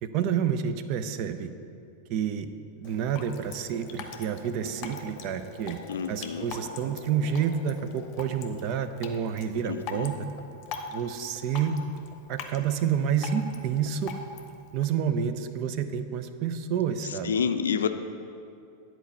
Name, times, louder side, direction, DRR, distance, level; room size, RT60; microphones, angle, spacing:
voice 1, 0.0-1.5 2.1-2.5 2.8-5.8 6.1-10.3 10.9-11.8 12.3-14.1 14.7-17.3, right 8 dB, 40° right, 10 dB, 0.5 m, -29 dB
Drip, 2.8-14.8, left 5 dB, 40° left, 0.7 m, -42 dB
voice 2, 5.9-6.5 9.7-10.1 17.2-17.9, left 7 dB, 65° left, 9 dB, 0.4 m, -28 dB
10.0 x 4.5 x 6.8 m, 2.5 s
figure-of-eight pair, 90°, 0 cm